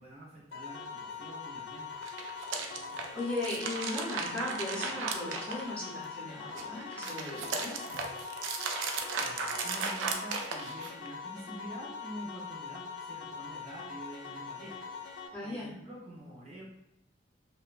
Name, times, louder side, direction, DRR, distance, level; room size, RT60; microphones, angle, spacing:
voice 1, 0.0-2.0 8.8-16.6, equal, 35° right, -4 dB, 0.5 m, -47 dB
sound 1, 0.5-15.3, left 5 dB, 85° left, 0.4 m, -43 dB
sound 2, 1.9-6.1 6.4-11.1, right 5 dB, 90° right, 0.3 m, -36 dB
voice 2, 3.1-7.7 15.3-15.7, left 2 dB, 5° left, -7 dB, 0.7 m, -37 dB
2.6 x 2.2 x 2.3 m, 0.84 s
head